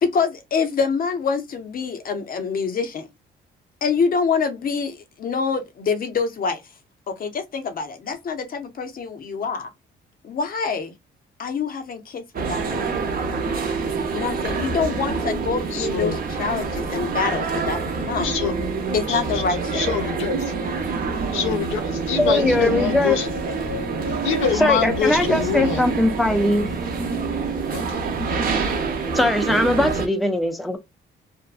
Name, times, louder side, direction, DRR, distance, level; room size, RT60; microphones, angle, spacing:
voice 1, 0.0-3.1 3.8-6.6 7.1-9.7 10.2-10.9 11.4-12.8 14.1-18.3 18.9-19.8, left 5 dB, 45° left, 0.7 m, -26 dB
sound 1, 12.3-30.1, right 4 dB, 45° right, 0.7 m, -26 dB
voice 2, 15.7-16.2 18.2-18.5 19.1-19.4 19.7-20.4 21.3-23.3 24.1-25.8 27.7-28.0, left 7 dB, 90° left, 0.6 m, -25 dB
voice 3, 22.2-23.2 24.6-26.7 29.2-30.8, left 1 dB, ahead, 0.5 m, -20 dB
2.6 x 2.2 x 2.3 m
cardioid pair, 90°, 20 cm